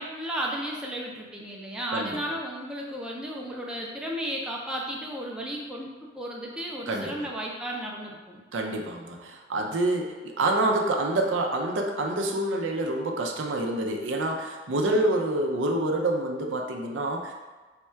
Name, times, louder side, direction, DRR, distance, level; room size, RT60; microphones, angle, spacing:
voice 1, 0.0-8.4, equal, 5° right, -3 dB, 0.5 m, -34 dB
voice 2, 6.9-7.3 8.5-17.3, right 2 dB, 75° right, 2 dB, 0.5 m, -27 dB
3.6 x 2.3 x 4.3 m, 1.3 s
head